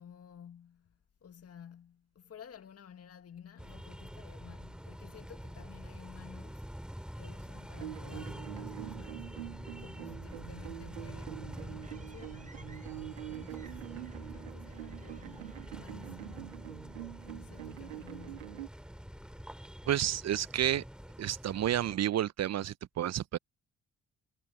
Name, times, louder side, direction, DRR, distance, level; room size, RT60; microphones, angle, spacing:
voice 1, 0.0-6.7 7.1-9.3 9.8-12.6 13.3-13.9 14.3-16.6 17.2-18.6, left 8 dB, 45° left, 2.0 m, -53 dB
sound 1, 3.6-22.0, equal, ahead, 2.9 m, -46 dB
sound 2, 7.7-18.7, right 15 dB, 85° right, 2.0 m, -45 dB
sound 3, 11.2-16.7, right 3 dB, 20° right, 6.2 m, -62 dB
voice 2, 19.9-20.8 21.2-23.4, right 11 dB, 45° right, 0.9 m, -30 dB
hypercardioid pair, 45°, 35 cm